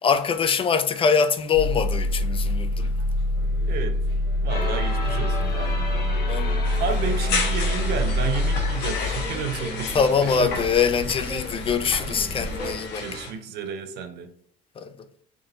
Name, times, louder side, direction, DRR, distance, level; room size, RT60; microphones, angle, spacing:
voice 1, 0.0-2.9 6.3-6.7 9.9-13.1 14.8-14.9, left 6 dB, 30° left, 0.4 m, -23 dB
sound 1, 1.5-12.8, left 1 dB, 30° right, 1.3 m, -26 dB
voice 2, 3.7-4.0 4.4-6.5 6.8-10.6 13.0-14.3, right 6 dB, 75° right, 0.7 m, -32 dB
sound 2, 4.5-10.2, left 2 dB, 65° left, 1.4 m, -35 dB
sound 3, 6.6-13.3, left 4 dB, 90° left, 1.1 m, -32 dB
3.7 x 3.6 x 2.8 m
cardioid pair, 110°, 17 cm